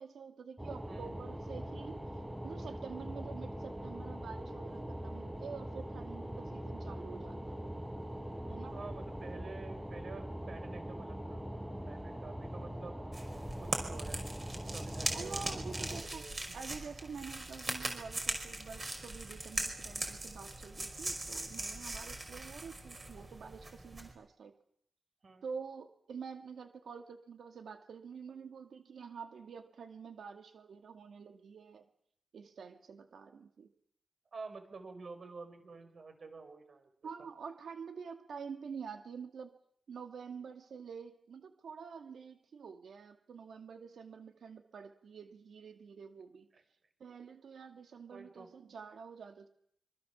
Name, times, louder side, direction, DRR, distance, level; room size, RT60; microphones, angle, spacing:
voice 1, 0.0-2.0 2.4-7.7 8.5-8.8 15.1-16.2 16.5-24.5 25.4-31.9 32.3-33.7 37.0-39.5 39.9-46.5 47.0-49.5, right 6 dB, 85° right, 6 dB, 2.3 m, -47 dB
sound 1, 0.6-16.0, equal, 5° right, 6.1 m, -42 dB
voice 2, 0.9-1.2 8.7-11.5 11.8-12.9 13.6-14.2 14.7-16.6 25.2-25.4 34.3-36.9 46.5-46.6 48.1-48.5, right 4 dB, 50° right, 8 dB, 4.9 m, -49 dB
sound 2, 13.1-24.1, right 2 dB, 25° right, 5.1 m, -40 dB
26.0 x 24.5 x 7.2 m, 0.68 s
wide cardioid pair, 160°, 0 cm